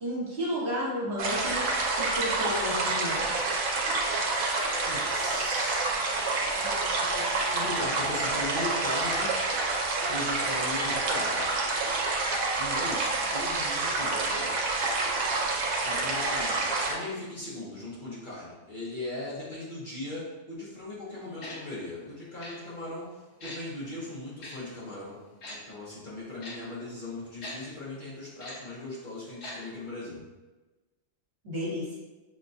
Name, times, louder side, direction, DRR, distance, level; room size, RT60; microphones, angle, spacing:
voice 1, 0.0-1.7 2.0-3.3 31.4-31.9, equal, 55° right, -6 dB, 1.5 m, -32 dB
sound 1, 1.2-16.9, right 3 dB, 85° right, 1.1 m, -28 dB
voice 2, 4.9-5.8 6.5-9.3 10.1-11.5 12.6-14.5 15.8-25.2 25.5-30.2, left 1 dB, 40° left, -8 dB, 0.9 m, -38 dB
Tick-tock, 21.4-21.6 22.4-22.6 23.4-23.6 24.4-24.5 25.4-25.6 26.4-26.6 27.4-27.6 28.4-28.6 29.4-29.6 29.8-29.9, left 2 dB, 65° left, 1.3 m, -40 dB
6.0 x 2.2 x 2.6 m, 1.2 s
omnidirectional pair, 1.4 m